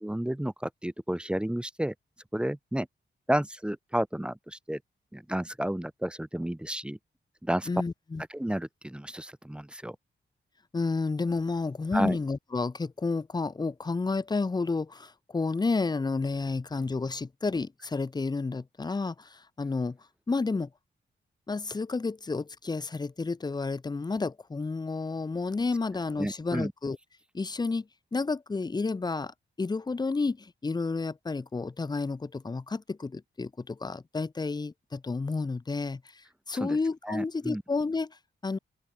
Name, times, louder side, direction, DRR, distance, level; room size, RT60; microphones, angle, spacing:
voice 1, 0.0-1.9 2.3-2.9 3.3-4.8 5.1-7.0 7.4-7.7 8.3-10.0 11.9-12.2 26.2-26.7 36.6-36.8 37.0-37.6, right 1 dB, 5° right, 0.9 m, -31 dB
voice 2, 7.7-8.2 10.7-20.0 20.3-20.7 21.5-27.0 27.3-38.6, left 3 dB, 20° left, 0.8 m, -31 dB
open air
wide cardioid pair, 135°, 19 cm